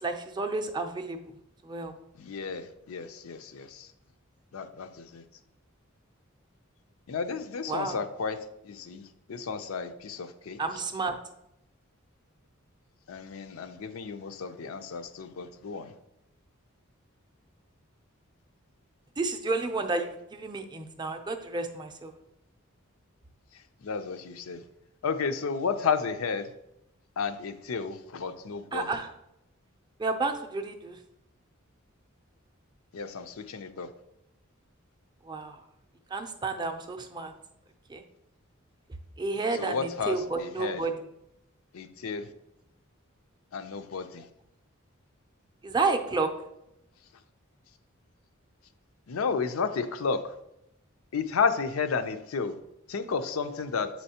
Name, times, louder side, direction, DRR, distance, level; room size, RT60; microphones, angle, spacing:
voice 1, 0.0-1.2 1.6-1.9 7.7-8.0 10.6-11.2 19.2-22.1 28.7-29.1 30.0-31.0 35.3-35.6 36.1-37.3 37.9-38.0 39.2-40.9 45.6-46.3, right 3 dB, 20° right, 5 dB, 0.5 m, -31 dB
voice 2, 2.2-3.9 4.5-5.2 7.1-8.4 8.6-9.0 9.3-10.6 13.1-15.9 23.8-24.6 25.0-26.5 27.2-28.9 32.9-33.9 39.5-40.8 41.7-42.3 43.5-44.3 49.1-50.3 51.1-52.5 52.9-53.9, left 5 dB, 85° left, 9 dB, 0.5 m, -32 dB
7.5 x 4.4 x 2.8 m, 0.82 s
head